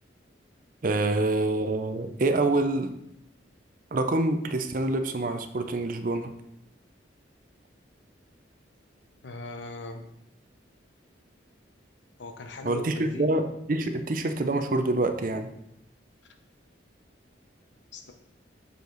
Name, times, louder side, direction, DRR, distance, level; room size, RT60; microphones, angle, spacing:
voice 1, 0.8-2.9 3.9-6.3 12.6-15.5, right 2 dB, 45° right, 9 dB, 0.5 m, -26 dB
voice 2, 9.2-10.0 12.2-13.3 17.9-18.1, left 2 dB, 70° left, 6 dB, 0.8 m, -39 dB
6.6 x 5.1 x 3.9 m, 0.81 s
head